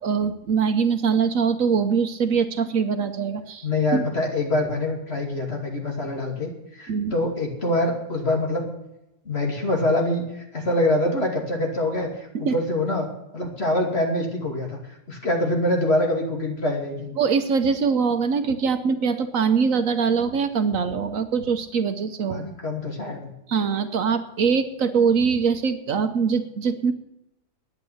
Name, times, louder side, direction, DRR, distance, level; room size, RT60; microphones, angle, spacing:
voice 1, 0.0-4.0 6.9-7.1 12.3-12.5 17.2-22.5 23.5-26.9, right 6 dB, 65° right, 9 dB, 1.2 m, -23 dB
voice 2, 3.6-8.7 9.2-14.8 15.1-17.1 22.3-23.3, left 1 dB, 45° left, 1 dB, 2.8 m, -25 dB
9.7 x 8.9 x 9.1 m, 0.86 s
omnidirectional pair, 1.6 m